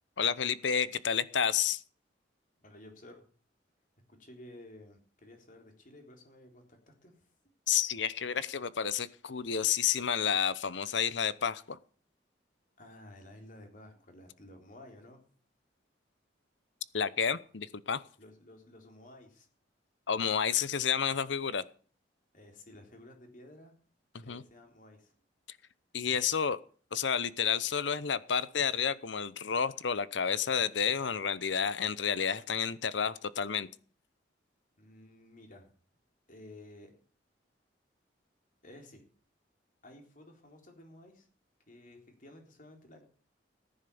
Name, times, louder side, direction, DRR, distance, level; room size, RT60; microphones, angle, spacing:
voice 1, 0.2-1.8 7.7-11.8 16.9-18.0 20.1-21.6 24.3-24.4 25.9-26.6 26.9-33.7, left 7 dB, 75° left, 17 dB, 0.8 m, -30 dB
voice 2, 2.6-3.2 4.1-7.3 12.8-15.2 18.2-19.5 22.3-23.7 24.2-25.1 34.8-35.7 36.3-36.9 38.6-39.0 39.8-41.3 41.7-43.0, left 1 dB, 45° left, 4 dB, 3.8 m, -53 dB
15.0 x 10.5 x 7.0 m, 0.43 s
head